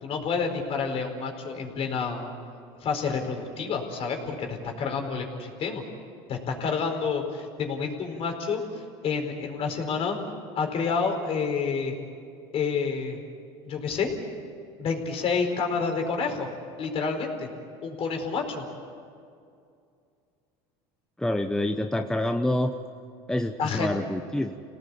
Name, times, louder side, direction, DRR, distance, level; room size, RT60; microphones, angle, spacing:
voice 1, 0.0-2.3 2.8-5.8 6.3-10.2 10.5-11.9 12.5-13.2 13.6-14.1 14.8-16.5 16.8-17.5 17.8-18.6 23.6-23.9, left 5 dB, 50° left, 3 dB, 4.6 m, -29 dB
voice 2, 21.2-22.7 23.3-24.5, left 1 dB, 5° left, 6 dB, 1.0 m, -27 dB
27.5 x 18.5 x 8.5 m, 2.4 s
supercardioid pair, 100°, 13 cm